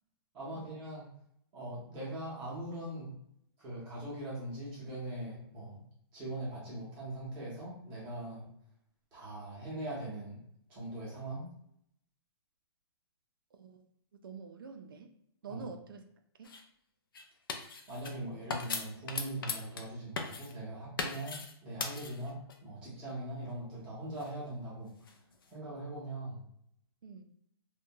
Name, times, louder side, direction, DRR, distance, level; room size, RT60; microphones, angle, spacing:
voice 1, 0.3-1.1 1.5-3.1 3.6-5.8 6.1-8.4 9.1-10.4 10.7-11.5 15.5-15.6 17.9-24.9 25.5-26.5, right 1 dB, 10° right, -7 dB, 0.6 m, -41 dB
voice 2, 13.5-13.8 14.2-15.1 15.4-16.0 16.4-16.5 27.0-27.2, right 5 dB, 55° right, 6 dB, 0.4 m, -47 dB
sound 1, 16.4-16.6 17.1-18.2 18.5-19.9 20.2-20.5 21.0-21.5 21.8-22.6 24.2-25.6, left 4 dB, 55° left, 0.4 m, -39 dB
2.6 x 2.2 x 2.7 m, 0.71 s
hypercardioid pair, 180°, 14 cm